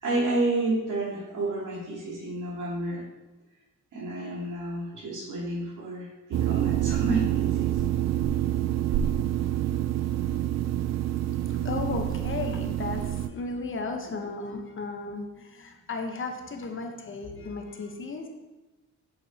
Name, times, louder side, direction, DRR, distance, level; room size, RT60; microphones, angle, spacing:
voice 1, 0.0-3.0 3.9-7.7, right 2 dB, 75° right, -4 dB, 2.2 m, -30 dB
sound 1, 6.3-13.3, right 12 dB, 60° right, 0.4 m, -27 dB
voice 2, 11.1-18.3, left 3 dB, 40° left, 4 dB, 0.9 m, -35 dB
6.8 x 4.3 x 4.1 m, 1.1 s
cardioid pair, 105°, 31 cm